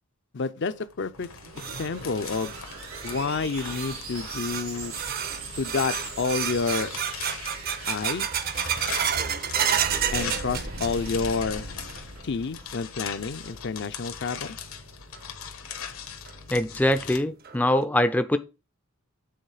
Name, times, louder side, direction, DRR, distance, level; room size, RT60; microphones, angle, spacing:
voice 1, 0.3-1.3 1.8-2.5 3.0-4.9 5.6-6.9 7.9-8.3 10.1-11.7 12.2-14.6, left 4 dB, 55° left, 0.5 m, -29 dB
sound 1, 0.7-17.2, left 7 dB, 80° left, 1.3 m, -40 dB
sound 2, 1.1-13.4, right 2 dB, 85° right, 4.2 m, -41 dB
sound 3, 1.2-11.3 11.6-12.2 12.6-12.7 13.4-13.5 15.1-15.2 15.7-15.8 16.3-16.4 16.8-16.9 17.4-17.8, right 8 dB, 45° right, 0.6 m, -31 dB
voice 2, 16.5-18.4, left 1 dB, 10° left, 0.4 m, -23 dB
7.9 x 4.0 x 4.9 m
head